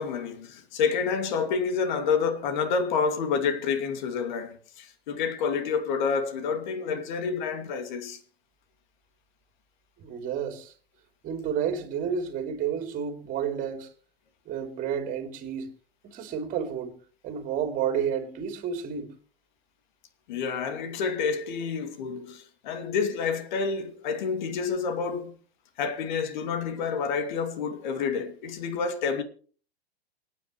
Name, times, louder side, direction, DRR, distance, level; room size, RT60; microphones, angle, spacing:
voice 1, 0.0-8.2 20.3-25.3 25.8-29.2, left 5 dB, 45° left, 2.5 m, -28 dB
voice 2, 10.0-10.7 11.2-13.9 14.4-15.7 16.0-17.0 17.2-19.1, right 8 dB, 25° right, 3.3 m, -31 dB
28.5 x 9.6 x 3.1 m
figure-of-eight pair, 105°, 31 cm